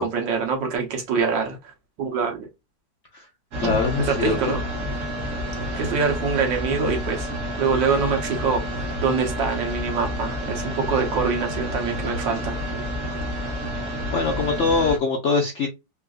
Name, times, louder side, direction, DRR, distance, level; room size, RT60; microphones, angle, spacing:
voice 1, 0.0-2.5 3.6-4.6 5.8-7.3 7.6-12.6, right 5 dB, 75° right, 1.6 m, -25 dB
sound 1, 3.5-15.0, equal, 55° right, 1.0 m, -29 dB
voice 2, 3.6-4.4 5.7-5.8 14.1-15.7, left 4 dB, 65° left, 0.7 m, -23 dB
3.8 x 2.4 x 2.4 m
omnidirectional pair, 2.0 m